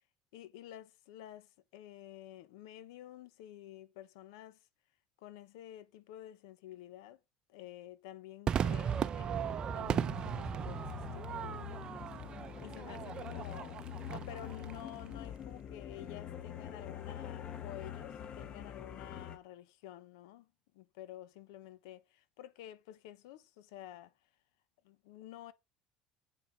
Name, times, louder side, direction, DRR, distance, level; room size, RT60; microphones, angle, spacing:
voice 1, 0.3-4.7 5.2-7.2 7.5-11.8 12.6-24.3 24.8-25.5, left 12 dB, 85° left, 1.1 m, -51 dB
Crowd / Fireworks, 8.5-15.0, right 8 dB, 40° right, 0.8 m, -37 dB
sound 1, 9.3-19.4, left 9 dB, 45° left, 1.4 m, -45 dB
8.6 x 5.7 x 6.0 m
supercardioid pair, 105°, 2 cm